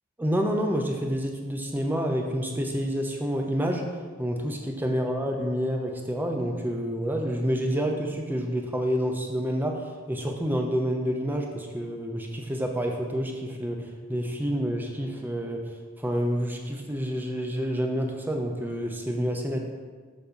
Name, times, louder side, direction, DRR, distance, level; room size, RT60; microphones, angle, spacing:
voice 1, 0.2-3.9 4.2-15.6 16.0-19.6, equal, 10° right, 2 dB, 0.4 m, -28 dB
6.8 x 2.7 x 5.1 m, 1.5 s
head